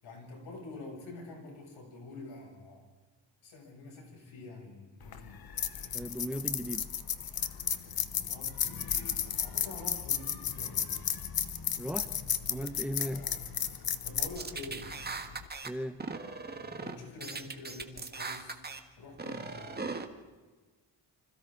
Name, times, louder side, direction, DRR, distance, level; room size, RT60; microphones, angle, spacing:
voice 1, 0.0-2.8 3.4-5.4 8.0-11.1 13.0-13.4 14.0-14.9 16.8-18.6 19.0-19.9, left 2 dB, 80° left, 0 dB, 7.3 m, -47 dB
sound 1, 5.0-15.5, left 8 dB, 50° left, 1.2 m, -34 dB
voice 2, 5.9-6.8 11.8-12.1 12.5-13.2 15.6-16.0, equal, 5° right, 10 dB, 0.8 m, -36 dB
sound 2, 14.2-15.7 16.0-16.9 17.2-18.8 19.2-20.0, right 4 dB, 20° right, 1.5 m, -39 dB
30.0 x 26.0 x 3.9 m, 1.3 s
wide cardioid pair, 150°, 46 cm